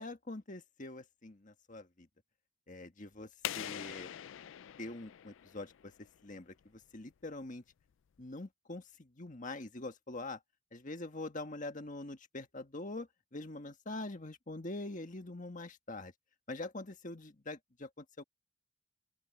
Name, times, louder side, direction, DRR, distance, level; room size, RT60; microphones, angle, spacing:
voice 1, 0.0-2.1 2.7-3.3 3.5-4.1 4.8-5.9 6.2-7.6 8.2-10.4 10.7-16.1 16.5-18.2, left 2 dB, 40° left, 1.6 m, -44 dB
sound 1, 3.4-6.1, left 11 dB, 70° left, 0.4 m, -43 dB
open air
head